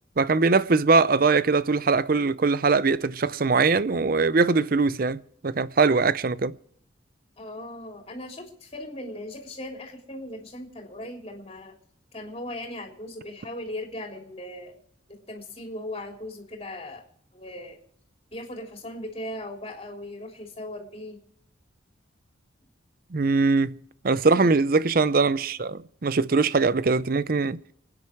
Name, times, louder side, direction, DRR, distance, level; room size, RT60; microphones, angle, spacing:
voice 1, 0.2-6.5 23.1-23.7 24.0-27.6, right 4 dB, 45° right, 0.5 m, -22 dB
voice 2, 7.4-11.7 12.1-14.8 15.1-17.1 17.3-17.8 18.3-21.2 24.3-24.5, left 1 dB, 30° left, 3.5 m, -38 dB
27.0 x 9.7 x 4.6 m
head